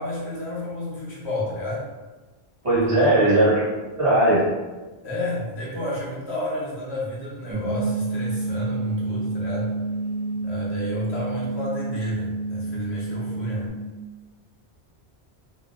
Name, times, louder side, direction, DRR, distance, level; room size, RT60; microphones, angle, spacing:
voice 1, 0.0-1.9 2.8-3.1 5.0-9.7 10.4-13.7, left 1 dB, 75° left, -5 dB, 1.1 m, -31 dB
voice 2, 2.6-3.6 4.0-4.5, right 1 dB, 30° right, -10 dB, 1.3 m, -18 dB
sound 1, 7.5-13.7, right 2 dB, 5° right, 0.7 m, -29 dB
3.0 x 2.7 x 2.4 m, 1.2 s
omnidirectional pair, 1.1 m